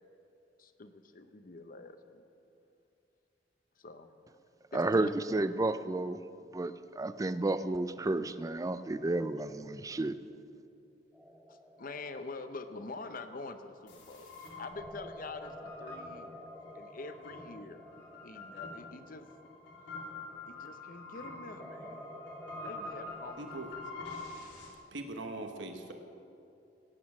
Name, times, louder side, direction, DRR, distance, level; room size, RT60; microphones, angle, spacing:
voice 1, 0.6-2.2 3.8-4.1 4.7-5.1 11.5-16.4 16.7-17.8 18.2-19.3 20.5-22.2 22.6-23.7, left 3 dB, 50° left, 9 dB, 0.8 m, -46 dB
voice 2, 4.7-6.2 6.5-10.2, right 2 dB, 20° right, 13 dB, 0.4 m, -31 dB
sound 1, 11.1-13.8 14.7-20.5 21.6-23.4, equal, ahead, 1.4 m, -50 dB
sound 2, 13.9-24.7, left 3 dB, 80° left, 3.3 m, -46 dB
voice 3, 23.4-23.7 24.9-25.9, right 2 dB, 80° right, 5 dB, 1.1 m, -41 dB
17.5 x 8.6 x 6.1 m, 2.7 s
head